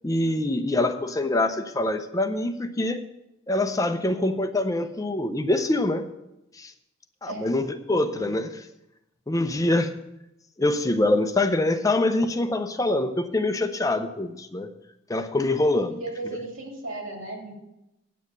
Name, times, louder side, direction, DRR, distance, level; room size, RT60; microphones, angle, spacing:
voice 1, 0.0-3.0 3.5-6.0 6.6-6.7 7.2-8.5 9.3-9.9 10.6-14.7 15.1-16.0, left 2 dB, 15° left, 8 dB, 0.5 m, -24 dB
voice 2, 8.0-8.3 16.0-17.5, right 2 dB, 85° right, 1 dB, 2.8 m, -36 dB
9.4 x 7.2 x 6.5 m, 0.90 s
head